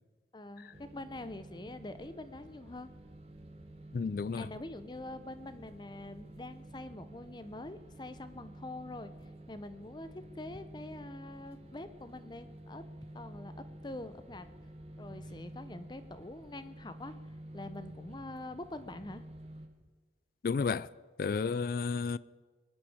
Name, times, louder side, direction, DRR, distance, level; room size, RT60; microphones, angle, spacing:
voice 1, 0.3-2.9 4.4-9.1 9.5-12.8 13.1-13.5 13.8-14.5 15.0-17.1 17.5-19.2, left 2 dB, 25° left, 0.7 m, -45 dB
sound 1, 0.7-19.7, right 1 dB, 35° right, 1.2 m, -50 dB
voice 2, 3.9-4.5 20.4-20.9 21.2-22.2, left 5 dB, 55° left, 0.3 m, -32 dB
22.5 x 10.0 x 5.0 m
head